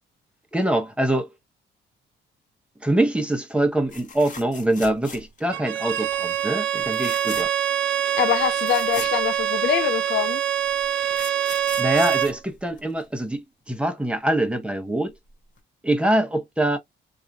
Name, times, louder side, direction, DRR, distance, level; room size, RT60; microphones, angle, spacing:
voice 1, 0.5-1.3 2.8-7.5 11.8-15.1 15.8-16.8, right 1 dB, 5° right, 0.9 m, -24 dB
sound 1, 3.9-5.5 5.9-6.2 6.8-7.7 8.1-8.2 8.4-9.9 10.7-13.2 15.1-15.3 15.6-15.7, left 5 dB, 40° left, 1.0 m, -40 dB
Bowed string instrument, 5.5-12.4, right 10 dB, 70° right, 0.5 m, -24 dB
voice 2, 8.2-10.4, left 11 dB, 60° left, 0.5 m, -24 dB
2.9 x 2.5 x 2.3 m
cardioid pair, 90°, 20 cm